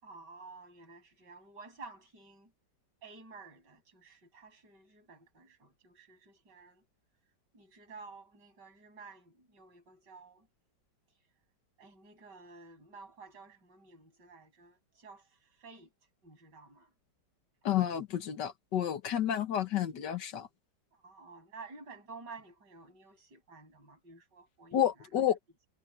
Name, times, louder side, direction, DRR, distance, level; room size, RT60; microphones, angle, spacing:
voice 1, 0.0-2.5 3.0-6.8 7.5-10.5 11.8-15.9 16.2-16.9 20.9-24.8, right 4 dB, 70° right, 8.2 m, -52 dB
voice 2, 17.7-20.5 24.7-25.4, left 10 dB, 70° left, 1.9 m, -30 dB
omnidirectional pair, 1.9 m